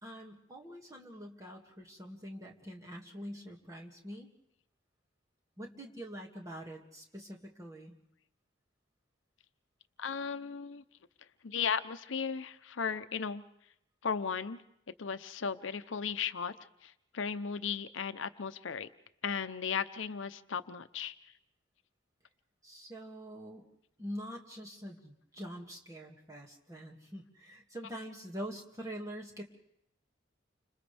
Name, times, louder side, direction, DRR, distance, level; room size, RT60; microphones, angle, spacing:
voice 1, 0.0-4.3 5.6-7.9 22.6-23.6 24.0-29.4, equal, 15° right, -1 dB, 2.1 m, -45 dB
voice 2, 10.0-10.8 11.4-13.4 14.0-14.6 15.0-16.5 16.8-18.9 19.2-21.1, left 6 dB, 80° left, 11 dB, 0.7 m, -36 dB
30.0 x 26.5 x 3.4 m, 0.77 s
head